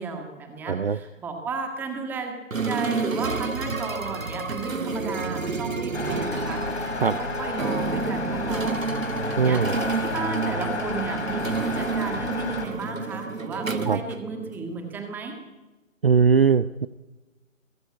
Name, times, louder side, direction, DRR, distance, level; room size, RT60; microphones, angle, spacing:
voice 1, 0.0-2.3 2.6-8.8 9.3-9.6 10.0-15.4, right 4 dB, 5° right, 4 dB, 1.6 m, -33 dB
voice 2, 0.7-1.0 7.0-7.2 9.4-9.8 13.9-14.0 16.0-16.9, right 6 dB, 45° right, 15 dB, 0.7 m, -20 dB
sound 1, 2.5-14.8, right 4 dB, 80° right, 1.8 m, -30 dB
sound 2, 5.9-12.7, left 4 dB, 55° left, 4.3 m, -32 dB
22.5 x 16.0 x 8.4 m, 1.2 s
figure-of-eight pair, 150°, 40 cm